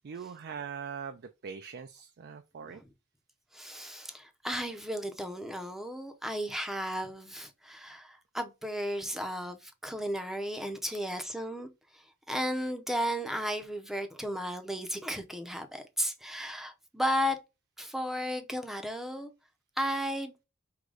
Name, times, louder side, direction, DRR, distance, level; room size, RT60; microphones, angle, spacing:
voice 1, 0.0-2.8 11.2-11.3, right 6 dB, 50° right, 0.4 m, -42 dB
voice 2, 3.5-17.4 17.8-19.3 19.8-20.3, equal, ahead, 0.6 m, -34 dB
4.8 x 2.2 x 3.7 m
head